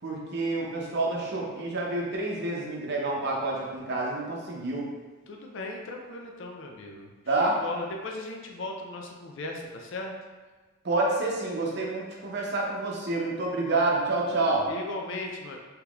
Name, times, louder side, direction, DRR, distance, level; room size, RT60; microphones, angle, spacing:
voice 1, 0.0-4.9 7.3-7.6 10.8-14.7, right 2 dB, 60° right, -2 dB, 0.7 m, -28 dB
voice 2, 5.3-7.1 7.6-10.1 14.7-15.6, left 2 dB, 70° left, 1 dB, 0.5 m, -37 dB
3.5 x 2.9 x 2.4 m, 1.3 s
head